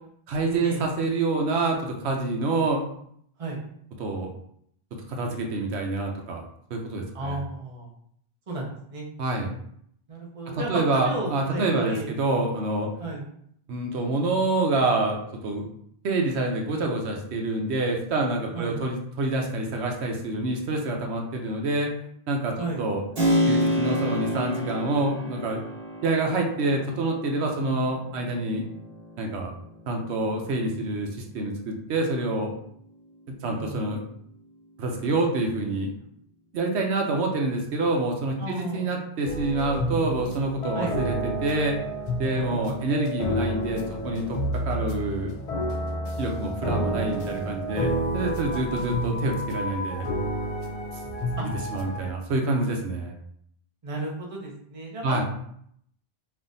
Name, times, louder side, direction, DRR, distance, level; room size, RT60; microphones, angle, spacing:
voice 1, 0.3-2.8 4.0-4.3 5.1-6.4 6.7-7.4 9.2-9.5 10.5-12.9 13.7-15.7 16.0-21.9 22.3-23.0 23.5-25.6 26.0-28.7 29.2-29.5 29.9-31.1 31.3-32.5 33.3-34.0 34.8-35.9 36.5-41.1 41.4-41.8 42.2-44.4 44.7-45.3 46.2-50.1 51.4-53.1 55.0-55.2, right 2 dB, 85° right, 2 dB, 1.0 m, -27 dB
voice 2, 7.1-7.9 8.5-9.1 10.1-12.1 13.0-13.2 18.5-18.8 22.6-22.8 33.4-33.8 38.4-39.0 40.7-41.0 42.3-42.8 48.5-49.0 51.4-51.5 53.8-55.2, right 2 dB, 35° right, -2 dB, 0.9 m, -33 dB
Keyboard (musical), 23.1-31.7, equal, 55° right, 1.5 m, -30 dB
sound 1, 39.2-52.1, equal, 50° left, 0.4 m, -30 dB
5.3 x 2.5 x 2.6 m, 0.68 s
omnidirectional pair, 1.1 m